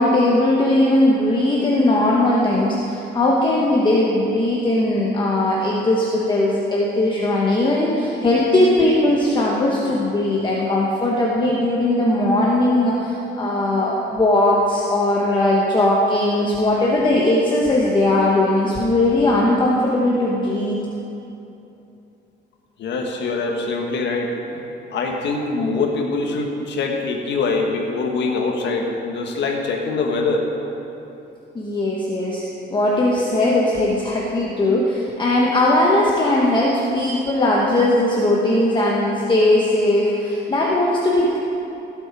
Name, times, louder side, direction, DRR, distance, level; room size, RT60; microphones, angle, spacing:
voice 1, 0.0-20.8 31.5-32.4 32.7-41.4, left 1 dB, 25° left, -4 dB, 1.1 m, -19 dB
voice 2, 22.8-30.5, left 3 dB, 65° left, 1 dB, 1.6 m, -24 dB
17.0 x 7.8 x 4.9 m, 2.9 s
cardioid pair, 150°, 19 cm